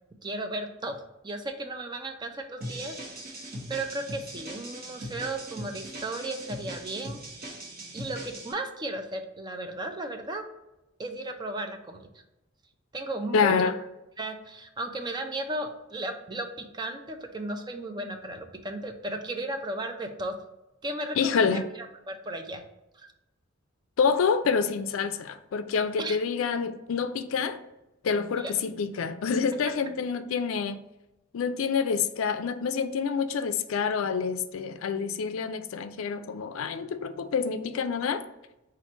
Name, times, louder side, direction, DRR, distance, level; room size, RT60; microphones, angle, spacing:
voice 1, 0.2-0.9 1.2-7.5 7.9-10.4 11.0-12.1 12.9-13.6 14.2-20.4 20.8-21.5 21.7-22.6 22.9-23.1 26.0-26.2 28.4-28.5, right 2 dB, 20° right, 0.4 m, -35 dB
sound 1, 2.6-8.5, right 1 dB, 45° right, 1.0 m, -40 dB
voice 2, 13.3-13.8 21.2-21.6 24.0-27.6 28.0-30.8 31.3-38.3, left 5 dB, 75° left, 0.4 m, -27 dB
4.4 x 2.5 x 4.3 m
head